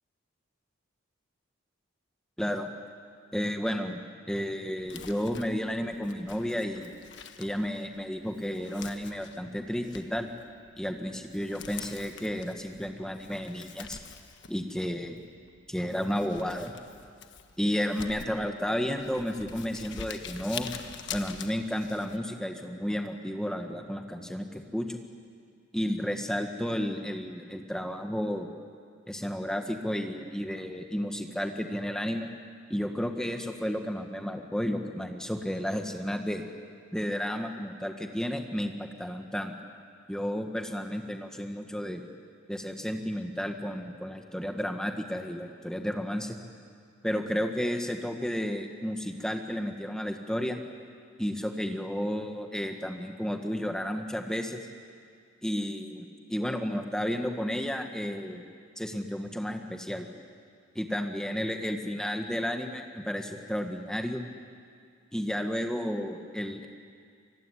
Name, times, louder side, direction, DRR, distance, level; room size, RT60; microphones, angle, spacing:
voice 1, 2.4-2.7 3.3-4.0 4.3-6.9 7.4-10.3 10.8-14.0 14.5-15.2 15.7-16.8 17.6-20.7 21.1-25.0 25.7-28.5 29.1-32.3 32.7-36.4 36.9-39.5 40.1-42.0 42.5-46.4 47.0-50.6 51.2-54.6 55.4-58.4 58.8-60.1 60.7-64.2 65.1-66.7, equal, 5° left, 4 dB, 1.7 m, -32 dB
Crumpling crinkling, 4.8-22.2, left 7 dB, 60° left, 1.4 m, -46 dB
25.5 x 23.0 x 10.0 m, 2.2 s
head